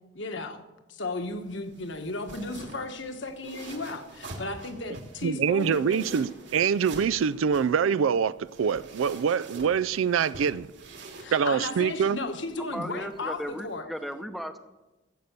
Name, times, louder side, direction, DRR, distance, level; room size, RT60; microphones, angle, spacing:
voice 1, 0.1-0.6 0.9-6.1 11.2-13.9, left 2 dB, 65° left, 1.3 m, -35 dB
sound 1, 1.1-13.8, right 2 dB, 65° right, 2.9 m, -46 dB
voice 2, 5.2-10.7 11.3-12.2, right 7 dB, 90° right, 0.4 m, -25 dB
voice 3, 12.7-14.6, equal, ahead, 0.7 m, -35 dB
15.5 x 8.4 x 6.7 m
head